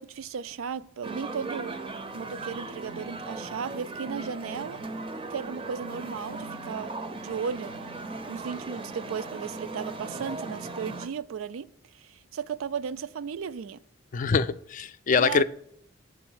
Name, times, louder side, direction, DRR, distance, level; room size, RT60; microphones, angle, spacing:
voice 1, 0.0-1.8 2.1-4.8 5.3-7.7 8.3-11.7 11.9-13.8 15.2-15.4, right 6 dB, 85° right, 0.4 m, -35 dB
sound 1, 1.0-11.1, right 3 dB, 25° right, 0.5 m, -38 dB
voice 2, 14.1-15.4, left 5 dB, 40° left, 0.3 m, -24 dB
8.3 x 4.0 x 6.2 m
head